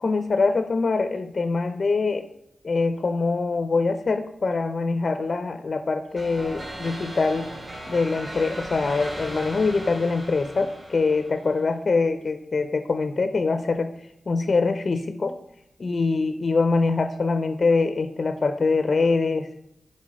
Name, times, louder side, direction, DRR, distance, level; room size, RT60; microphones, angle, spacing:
voice 1, 0.0-2.3 2.6-7.5 7.9-13.9 14.3-15.3 15.8-19.5, left 3 dB, 55° left, 9 dB, 0.5 m, -24 dB
sound 1, 6.2-11.6, right 1 dB, 35° right, 3.0 m, -37 dB
7.5 x 4.2 x 6.1 m, 0.74 s
cardioid pair, 50°, 0 cm